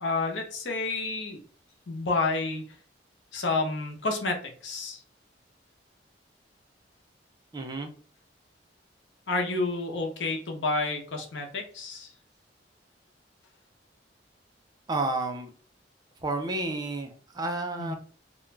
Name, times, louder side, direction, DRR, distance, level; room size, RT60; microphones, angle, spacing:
voice 1, 0.0-1.4 1.9-2.6 3.3-5.0 9.3-12.1 17.8-17.9, left 3 dB, 90° left, 3 dB, 0.7 m, -30 dB
voice 2, 7.5-7.9 14.9-15.5 16.2-17.9, right 2 dB, 20° right, 4 dB, 0.4 m, -31 dB
2.4 x 2.2 x 3.1 m, 0.43 s
head